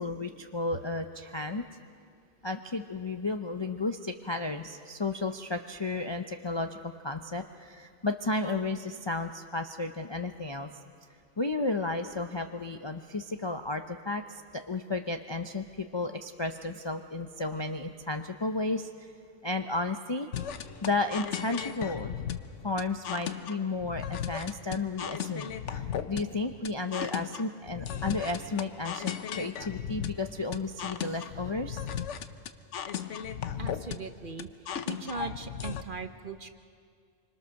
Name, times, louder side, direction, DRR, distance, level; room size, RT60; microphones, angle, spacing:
voice 1, 0.0-1.6 2.4-10.7 11.4-19.1 19.4-20.3 20.8-22.1 22.6-31.8, left 3 dB, 30° left, 5 dB, 0.5 m, -33 dB
sound 1, 20.3-35.8, left 8 dB, 65° left, 1.1 m, -36 dB
voice 2, 33.6-34.5 34.8-36.5, right 4 dB, 45° right, 8 dB, 1.1 m, -39 dB
26.0 x 25.5 x 6.5 m, 2.2 s
omnidirectional pair, 1.3 m